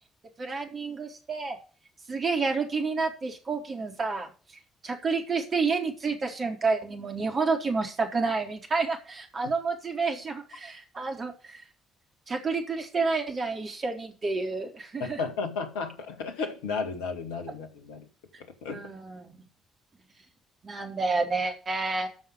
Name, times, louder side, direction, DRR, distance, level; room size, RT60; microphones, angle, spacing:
voice 1, 0.4-1.6 2.1-4.3 4.8-11.6 12.3-15.2 18.7-19.4 20.6-22.1, right 4 dB, 40° right, 3.9 m, -29 dB
voice 2, 15.0-18.1 18.6-18.9, left 4 dB, 70° left, 1.8 m, -33 dB
13.5 x 5.7 x 6.6 m
figure-of-eight pair, 45°, 0 cm